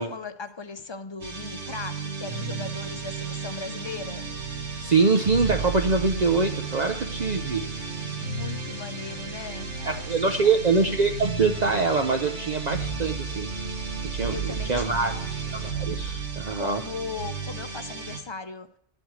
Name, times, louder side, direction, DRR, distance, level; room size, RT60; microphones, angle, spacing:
voice 1, 0.0-4.3 8.2-10.5 14.3-15.2 16.5-18.7, left 4 dB, 30° left, 0.6 m, -38 dB
sound 1, 1.2-18.2, right 5 dB, 90° right, 1.8 m, -33 dB
voice 2, 4.8-7.6 9.8-13.5 14.1-14.3 14.7-15.1 15.5-16.8, right 4 dB, 45° right, 0.7 m, -24 dB
11.5 x 7.9 x 6.3 m
omnidirectional pair, 1.1 m